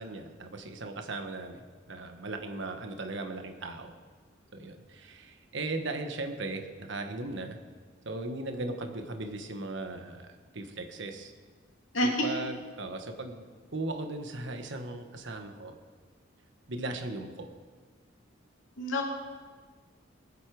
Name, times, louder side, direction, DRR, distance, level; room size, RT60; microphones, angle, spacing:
voice 1, 0.0-3.9 4.5-7.6 8.0-11.3 12.0-13.5 13.7-15.7 16.7-17.5, right 2 dB, 65° right, 5 dB, 1.3 m, -37 dB
voice 2, 11.9-12.3 18.8-19.1, left 1 dB, 80° left, 0 dB, 2.6 m, -27 dB
21.5 x 8.4 x 4.9 m, 1.5 s
head